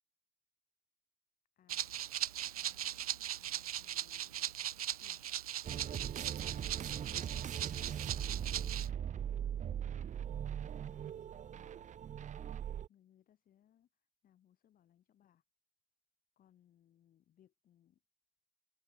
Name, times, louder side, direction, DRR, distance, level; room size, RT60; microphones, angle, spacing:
voice 1, 1.6-1.9 2.6-5.2 6.5-9.5 10.4-11.9 12.9-13.9 14.2-15.4 16.4-18.0, left 11 dB, 50° left, 3.2 m, -69 dB
Rattle (instrument), 1.7-8.9, right 11 dB, 90° right, 0.8 m, -39 dB
sound 1, 5.6-12.9, right 9 dB, 40° right, 1.1 m, -40 dB
open air
hypercardioid pair, 60°, 18 cm